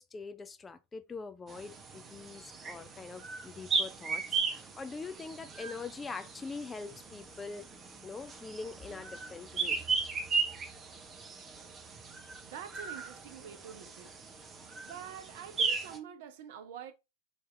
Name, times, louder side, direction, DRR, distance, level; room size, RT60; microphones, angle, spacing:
voice 1, 0.0-7.7 8.0-9.8, left 4 dB, 15° left, 0.4 m, -43 dB
sound 1, 1.5-16.0, right 5 dB, 20° right, 0.8 m, -37 dB
voice 2, 12.4-14.2 14.8-16.9, right 8 dB, 50° right, 0.7 m, -46 dB
5.0 x 2.8 x 3.3 m
figure-of-eight pair, 90°, 0 cm